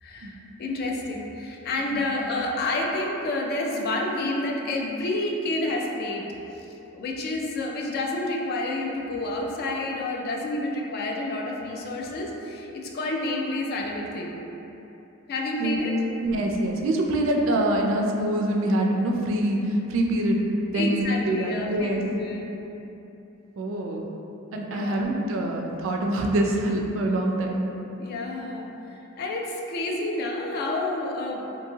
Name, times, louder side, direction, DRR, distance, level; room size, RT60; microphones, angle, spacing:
voice 1, 0.0-6.3 6.5-6.7 6.9-14.4 15.3-16.1 20.7-22.5 24.7-25.0 28.0-31.4, left 2 dB, 50° left, 0 dB, 0.3 m, -29 dB
voice 2, 16.2-19.6 19.9-20.4 20.7-22.0 23.6-24.1 24.5-27.7, right 1 dB, 65° right, 1 dB, 0.3 m, -25 dB
2.7 x 2.6 x 2.7 m, 3.0 s
head